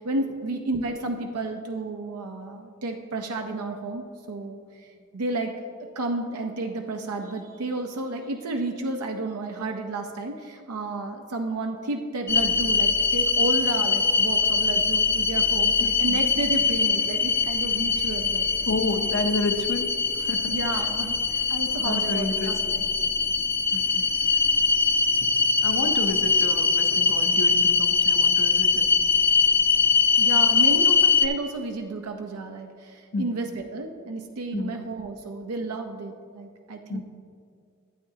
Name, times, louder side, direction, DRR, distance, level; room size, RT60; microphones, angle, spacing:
voice 1, 0.0-5.5 6.0-18.5 20.5-22.9 24.3-24.4 30.2-37.0, right 2 dB, 80° right, 4 dB, 0.6 m, -32 dB
sound 1, 12.3-31.3, left 4 dB, 10° left, 0.3 m, -22 dB
voice 2, 15.8-16.2 18.7-20.8 21.8-22.8 23.7-24.2 25.2-25.3 25.6-28.9 33.1-33.3 34.5-34.8 36.9-37.0, left 3 dB, 60° left, 7 dB, 0.7 m, -31 dB
12.0 x 8.7 x 2.8 m, 2.2 s
head